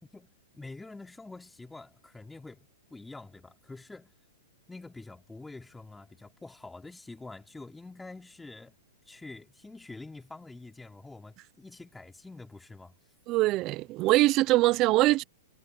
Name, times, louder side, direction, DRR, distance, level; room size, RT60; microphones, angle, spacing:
voice 1, 0.0-4.1 4.7-8.7 9.1-12.9, left 3 dB, 5° left, 3.6 m, -46 dB
voice 2, 13.3-15.2, right 18 dB, 35° right, 0.8 m, -23 dB
hypercardioid pair, 135°, 0 cm